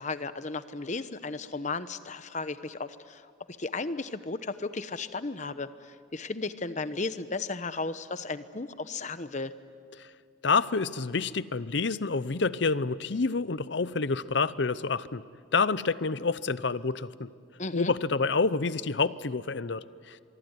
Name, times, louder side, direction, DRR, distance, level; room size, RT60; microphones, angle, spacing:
voice 1, 0.0-3.3 3.6-9.5 17.6-17.9, left 3 dB, 35° left, 13 dB, 0.9 m, -35 dB
voice 2, 10.4-15.2 15.5-17.3 17.7-20.2, left 4 dB, 60° left, 17 dB, 0.7 m, -28 dB
25.0 x 24.0 x 9.6 m, 2.4 s
head